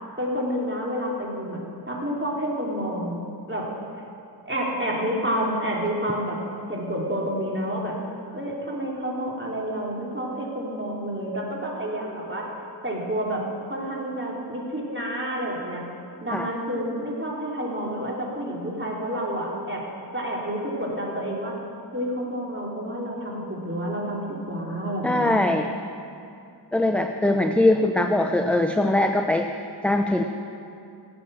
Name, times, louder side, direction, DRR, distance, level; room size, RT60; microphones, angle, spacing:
voice 1, 0.2-1.6 1.9-3.2 3.5-3.7 4.4-6.4 6.7-8.0 8.3-12.5 12.8-15.8 16.2-19.8 20.1-21.5 21.9-25.3, equal, 25° right, -3 dB, 3.1 m, -29 dB
voice 2, 25.0-25.7 26.7-30.2, left 1 dB, 5° left, 5 dB, 0.6 m, -22 dB
17.5 x 7.7 x 6.2 m, 2.5 s
wide cardioid pair, 45°, 45 cm